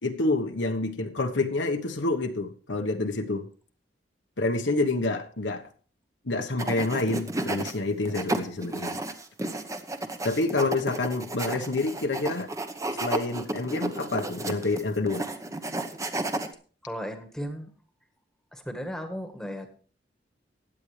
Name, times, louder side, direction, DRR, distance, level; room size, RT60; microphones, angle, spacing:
voice 1, 0.0-3.5 4.4-5.6 6.2-9.0 10.2-12.5 12.9-15.3, left 2 dB, 75° left, 5 dB, 1.2 m, -28 dB
sound 1, 6.6-7.7 8.0-16.5, right 2 dB, 20° right, 1.0 m, -32 dB
voice 2, 16.8-17.7 18.5-19.7, equal, 5° left, 6 dB, 1.5 m, -35 dB
16.0 x 10.0 x 3.3 m, 0.40 s
head